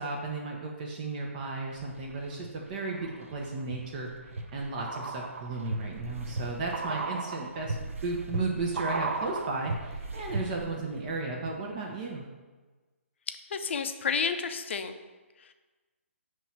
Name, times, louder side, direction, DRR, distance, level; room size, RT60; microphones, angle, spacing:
voice 1, 0.0-7.7 8.0-12.3, right 3 dB, 35° right, -1 dB, 0.7 m, -34 dB
sound 1, 1.7-2.5 2.9-10.8 11.1-11.2, right 3 dB, 75° right, 0.6 m, -36 dB
voice 2, 13.5-14.9 15.4-15.5, left 6 dB, 60° left, 8 dB, 0.5 m, -31 dB
5.5 x 3.2 x 5.6 m, 1.3 s
figure-of-eight pair, 140°, 7 cm